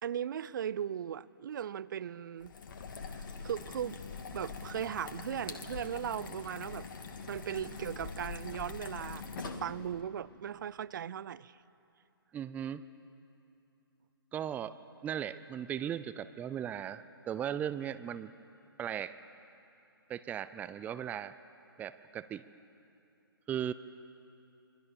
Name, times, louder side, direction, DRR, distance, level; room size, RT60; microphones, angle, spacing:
voice 1, 0.0-2.5 3.2-4.0 4.3-6.9 7.3-11.6, right 9 dB, 55° right, 19 dB, 0.6 m, -38 dB
sound 1, 2.4-10.0, left 5 dB, 55° left, 2.6 m, -43 dB
voice 2, 12.3-12.8 14.3-14.8 15.0-18.3 18.8-19.1 20.1-21.3 21.8-22.4 23.5-23.7, right 9 dB, 10° right, 13 dB, 0.6 m, -37 dB
27.5 x 24.5 x 7.1 m, 2.9 s
figure-of-eight pair, 130°, 13 cm